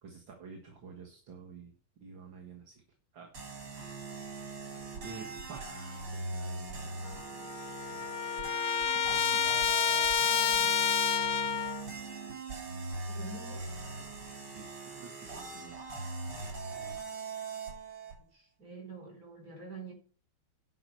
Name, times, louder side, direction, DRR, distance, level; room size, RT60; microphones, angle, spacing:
voice 1, 0.0-1.7 2.0-2.8 3.1-3.3 5.0-8.1 8.9-9.8 10.2-10.7 14.5-15.8, right 5 dB, 65° right, 2.5 m, -50 dB
sound 1, 3.3-18.2, right 3 dB, 85° right, 4.3 m, -41 dB
Trumpet, 7.1-7.2 7.4-11.8, left 7 dB, 90° left, 0.6 m, -29 dB
voice 2, 13.0-13.6 18.3-19.9, right 3 dB, 40° right, 4.5 m, -46 dB
11.0 x 5.9 x 6.8 m
omnidirectional pair, 2.3 m